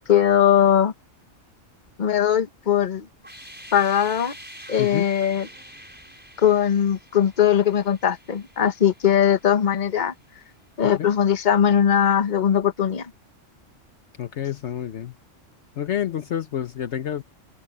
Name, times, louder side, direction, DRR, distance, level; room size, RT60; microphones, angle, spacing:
voice 1, 0.1-0.9 2.0-3.1 3.7-4.3 4.7-5.5 6.4-10.1 10.8-13.1, left 9 dB, 40° left, 1.1 m, -20 dB
sound 1, 3.2-10.0, equal, 10° right, 5.9 m, -46 dB
voice 2, 14.2-15.1 15.8-17.2, left 10 dB, 65° left, 1.1 m, -28 dB
omnidirectional pair, 1.3 m